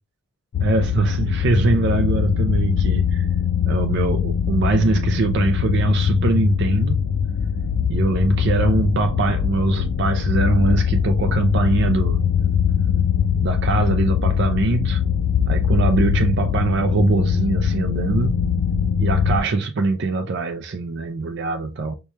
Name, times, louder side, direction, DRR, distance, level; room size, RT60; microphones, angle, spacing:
sound 1, 0.5-19.4, left 7 dB, 75° left, 0.3 m, -21 dB
voice 1, 0.6-3.3 3.7-7.0 7.9-12.2 13.4-15.0 15.5-18.4 19.0-22.0, right 3 dB, 50° right, 0.4 m, -22 dB
4.6 x 2.2 x 2.7 m
head